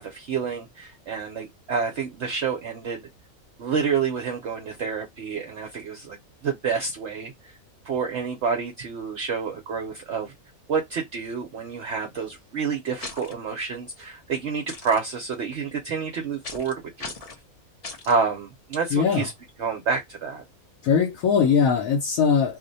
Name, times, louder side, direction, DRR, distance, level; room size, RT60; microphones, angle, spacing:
voice 1, 0.0-3.1 3.6-6.2 6.4-7.6 7.8-10.3 10.7-17.1 18.0-19.3 19.6-20.4, right 5 dB, 60° right, 0.8 m, -28 dB
sound 1, 13.0-13.3 14.7-15.0 16.4-16.7 17.0-17.4 17.8-18.2, left 3 dB, 45° left, 0.5 m, -37 dB
voice 2, 18.9-19.3 20.8-22.6, left 6 dB, 80° left, 1.1 m, -21 dB
2.7 x 2.1 x 3.8 m
omnidirectional pair, 1.5 m